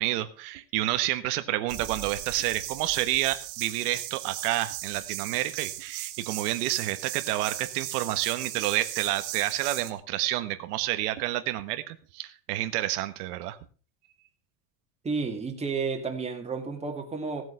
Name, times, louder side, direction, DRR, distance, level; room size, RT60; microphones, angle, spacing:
voice 1, 0.0-13.6, right 15 dB, 80° right, 10 dB, 1.3 m, -29 dB
sound 1, 1.7-9.9, right 14 dB, 65° right, 2.0 m, -37 dB
voice 2, 15.0-17.4, right 4 dB, 15° right, 2 dB, 2.3 m, -31 dB
16.5 x 8.0 x 5.5 m, 0.38 s
cardioid pair, 150°, 45 cm